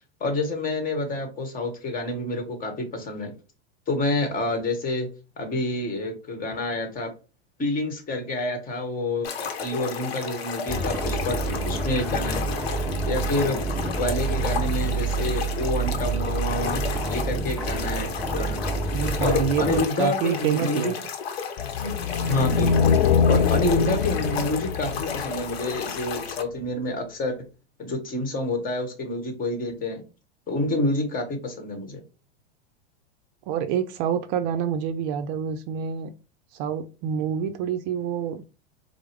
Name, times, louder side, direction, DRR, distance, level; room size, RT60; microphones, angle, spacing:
voice 1, 0.2-3.3 3.9-5.1 5.4-7.1 7.6-12.5 13.1-13.6 14.0-18.6 19.2-20.9 21.8-21.9 22.2-22.9 23.3-27.4 27.8-30.0 30.5-32.0, left 2 dB, 25° left, 1.2 m, -28 dB
sound 1, 9.2-26.4, left 7 dB, 75° left, 0.8 m, -33 dB
sound 2, 10.7-19.8, right 3 dB, ahead, 0.6 m, -28 dB
voice 2, 18.9-20.9 33.5-36.1 36.5-38.4, right 8 dB, 45° right, 0.5 m, -27 dB
sound 3, 21.6-26.0, left 6 dB, 50° left, 0.4 m, -23 dB
4.5 x 2.0 x 3.3 m
hypercardioid pair, 105°, 31 cm